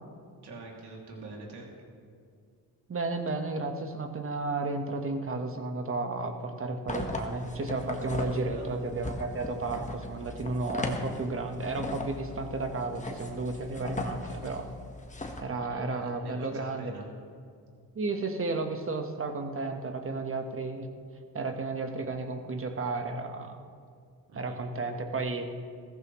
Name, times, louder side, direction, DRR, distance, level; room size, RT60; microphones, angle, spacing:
voice 1, 0.4-1.7 8.5-8.7 15.6-17.1 24.3-24.6, right 3 dB, 75° right, -1 dB, 2.8 m, -45 dB
voice 2, 2.9-14.7 15.4-16.9 17.9-20.9 21.3-23.6 24.3-25.5, right 3 dB, 35° right, 5 dB, 1.4 m, -33 dB
sound 1, 6.9-15.4, left 2 dB, 20° left, 1.4 m, -38 dB
16.0 x 14.5 x 3.2 m, 2.2 s
cardioid pair, 85°, 40 cm